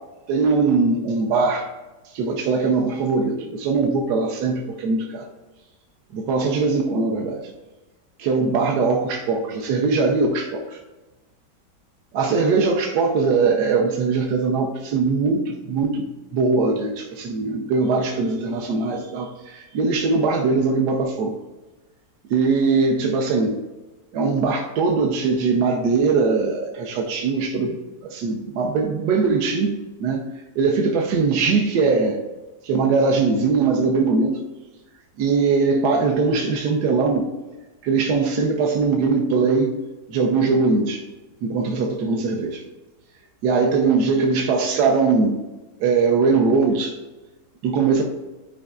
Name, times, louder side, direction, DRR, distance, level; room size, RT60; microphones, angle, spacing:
voice 1, 0.3-1.7 2.1-5.3 6.1-7.4 8.2-10.8 12.1-16.1 16.3-21.3 22.3-23.6 24.1-27.8 28.0-29.7 30.0-30.2 30.5-32.2 32.6-34.4 35.2-37.2 37.8-39.7 40.1-41.0 41.4-42.6 43.4-45.3 45.8-47.0 47.6-48.0, right 4 dB, 75° right, 1 dB, 1.3 m, -21 dB
11.5 x 4.8 x 2.4 m, 1.1 s
omnidirectional pair, 1.8 m